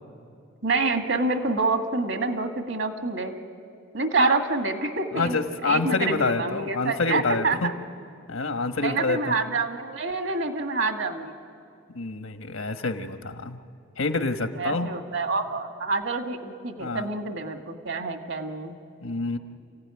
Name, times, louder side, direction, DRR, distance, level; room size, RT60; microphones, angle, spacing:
voice 1, 0.6-3.3 3.9-7.7 8.8-11.3 14.5-18.7, right 3 dB, 65° right, 5 dB, 1.9 m, -27 dB
voice 2, 5.1-7.7 8.3-9.4 11.9-13.6 14.0-14.9 16.8-17.1 19.0-19.4, left 3 dB, 85° left, 7 dB, 1.3 m, -27 dB
29.0 x 16.0 x 9.8 m, 2.4 s
head